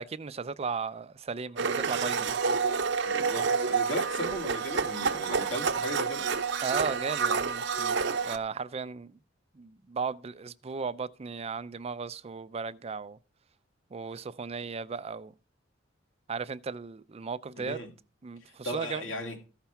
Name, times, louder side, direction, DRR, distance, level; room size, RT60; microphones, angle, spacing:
voice 1, 0.0-2.4 6.6-9.1 9.6-13.2 13.9-15.3 16.3-17.8 18.2-19.0, right 5 dB, 35° right, 0.4 m, -36 dB
Domestic sounds home sounds, 1.6-8.4, right 5 dB, 65° right, 0.8 m, -29 dB
voice 2, 3.0-6.3 17.7-17.9 18.6-19.4, equal, 80° left, 2.4 m, -36 dB
14.5 x 5.9 x 5.7 m
head